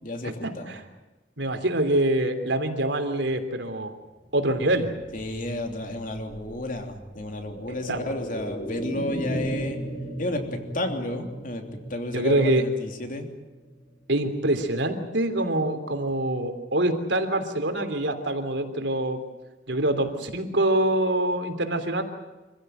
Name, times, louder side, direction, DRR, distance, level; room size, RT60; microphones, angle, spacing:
voice 1, 0.0-0.8 5.1-9.8 10.2-11.6 11.9-13.3, left 1 dB, 45° left, 4 dB, 3.2 m, -32 dB
voice 2, 1.4-3.9 4.3-4.9 7.9-8.0 12.1-12.7 14.1-19.2 19.7-22.0, right 1 dB, 75° right, 6 dB, 3.3 m, -25 dB
sound 1, 4.7-14.2 14.5-14.6, right 1 dB, 30° left, 5.4 m, -37 dB
26.5 x 15.5 x 9.2 m, 1.2 s
head